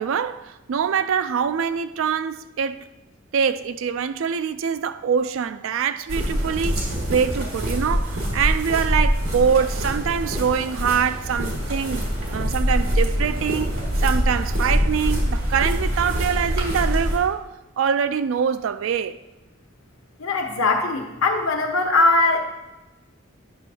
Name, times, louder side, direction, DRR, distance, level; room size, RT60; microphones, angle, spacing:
voice 1, 0.0-2.8 3.3-13.7 14.0-17.5 17.8-19.2, right 7 dB, 70° right, 0.3 m, -24 dB
sound 1, 6.1-17.2, equal, 90° right, 2.0 m, -24 dB
voice 2, 20.2-22.4, left 2 dB, 80° left, 1.0 m, -20 dB
9.7 x 6.1 x 2.8 m
head